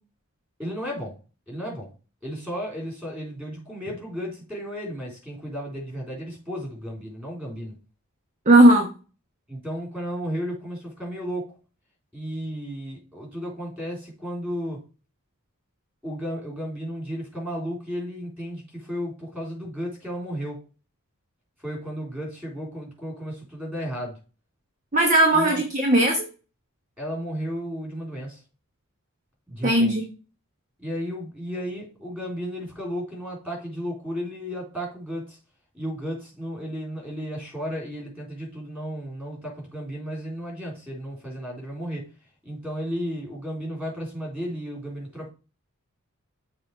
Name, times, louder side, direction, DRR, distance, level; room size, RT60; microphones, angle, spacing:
voice 1, 0.6-1.2 1.5-1.9 2.2-7.8 9.5-11.5 12.1-14.8 16.0-20.6 21.6-24.2 25.3-25.6 27.0-28.4 29.5-29.9 30.8-35.4 35.7-42.1 42.4-45.3, equal, 10° right, -1 dB, 3.5 m, -33 dB
voice 2, 8.5-8.9 24.9-26.3 29.6-30.0, right 1 dB, 35° right, 2 dB, 1.1 m, -17 dB
6.9 x 3.9 x 4.8 m, 0.33 s
head